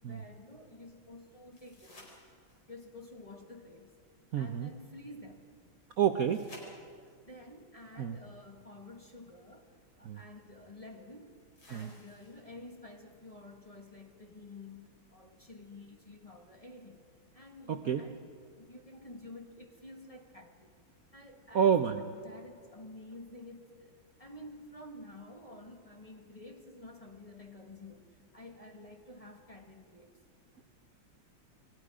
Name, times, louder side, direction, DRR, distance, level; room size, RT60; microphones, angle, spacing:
voice 1, 0.0-2.2 2.7-3.9 4.3-5.5 7.3-11.4 11.6-17.0 17.3-18.3 18.6-20.8 21.1-21.8 22.1-30.2, left 2 dB, 20° left, 3 dB, 1.5 m, -50 dB
sound 1, 1.5-2.8 6.3-7.3 9.2-9.3 11.6-12.6 15.5-15.6, left 1 dB, 80° left, 5.7 m, -55 dB
voice 2, 4.3-4.7 6.0-6.5 8.0-8.2 10.0-10.2 11.7-11.9 17.7-18.0 21.5-22.1, right 8 dB, 60° right, 7 dB, 1.0 m, -29 dB
29.5 x 22.5 x 5.0 m, 2.1 s
omnidirectional pair, 2.2 m